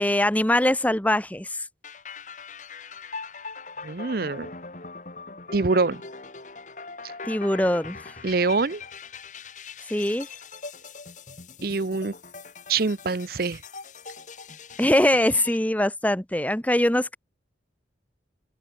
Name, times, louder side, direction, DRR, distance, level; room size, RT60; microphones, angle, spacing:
voice 1, 0.0-1.6 7.2-8.1 9.9-10.3 14.8-17.2, left 1 dB, 10° left, 1.2 m, -22 dB
sound 1, 1.8-15.6, left 4 dB, 40° left, 2.2 m, -41 dB
voice 2, 3.8-4.5 5.5-6.0 8.2-8.8 11.6-12.1 12.7-13.6, right 4 dB, 55° right, 0.7 m, -24 dB
open air
head